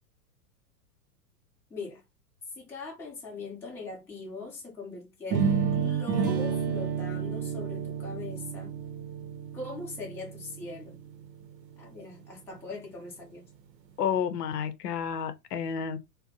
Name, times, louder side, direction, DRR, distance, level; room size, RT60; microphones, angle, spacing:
voice 1, 1.7-2.0 2.6-8.8 9.5-11.0 11.8-13.4, left 3 dB, 5° left, 0.5 m, -40 dB
sound 1, 5.3-11.2, right 7 dB, 80° right, 0.7 m, -30 dB
voice 2, 14.0-16.0, left 7 dB, 70° left, 0.6 m, -30 dB
2.5 x 2.0 x 2.6 m
hypercardioid pair, 110°, 49 cm